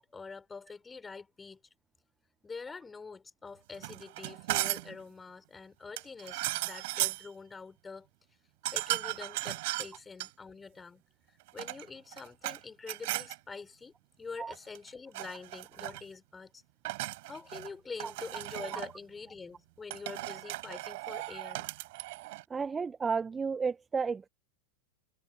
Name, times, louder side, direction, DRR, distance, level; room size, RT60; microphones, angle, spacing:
voice 1, 0.0-1.6 2.4-8.1 8.6-11.0 11.5-16.6 17.2-21.7, left 4 dB, 15° left, 6.4 m, -45 dB
sound 1, 3.7-5.0 6.0-7.3 8.6-10.3 11.4-12.6 12.9-13.4 14.5-14.9 15.1-16.0 16.8-17.7 18.0-18.9 19.9-22.4, right 21 dB, 50° right, 6.6 m, -36 dB
voice 2, 22.5-24.3, right 5 dB, 15° right, 1.3 m, -32 dB
figure-of-eight pair, 90°, 0 cm